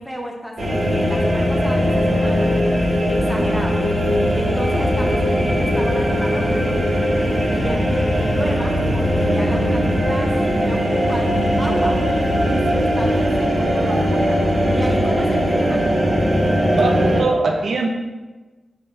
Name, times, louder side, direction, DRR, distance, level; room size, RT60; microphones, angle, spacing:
voice 1, 0.0-2.5 3.1-3.8 4.3-12.0 12.4-14.4 14.7-15.9, equal, ahead, 0 dB, 0.6 m, -32 dB
sound 1, 0.6-17.2, equal, 60° right, 1.0 m, -19 dB
voice 2, 16.7-17.9, right 3 dB, 80° right, 1 dB, 0.4 m, -21 dB
3.9 x 2.1 x 3.6 m, 1.2 s
wide cardioid pair, 95°, 0 cm